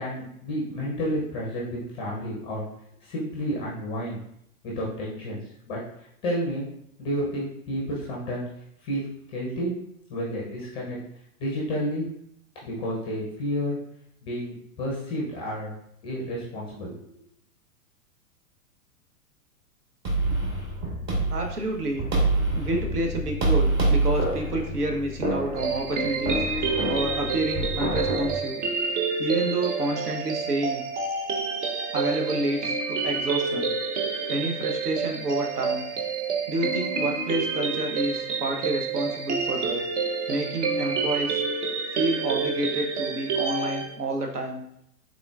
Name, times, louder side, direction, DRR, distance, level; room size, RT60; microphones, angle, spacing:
voice 1, 0.0-2.6 3.0-4.2 4.8-5.4 5.7-5.8 6.2-6.6 7.0-8.5 8.8-9.0 9.3-9.7 10.1-11.0 11.4-12.1 12.6-13.8 14.2-15.7 16.0-16.9, equal, 10° left, -4 dB, 0.4 m, -30 dB
sound 1, 20.0-28.3, right 2 dB, 25° right, 1.0 m, -26 dB
voice 2, 21.3-22.1 22.5-26.5 26.9-28.6 29.2-30.8 31.9-33.7 34.3-35.9 36.5-39.8 40.3-41.4 41.9-44.6, right 1 dB, 80° right, 2 dB, 0.9 m, -29 dB
sound 2, 25.6-43.9, right 4 dB, 50° right, 0.7 m, -28 dB
3.7 x 3.6 x 2.3 m, 0.75 s
figure-of-eight pair, 110°, 45 cm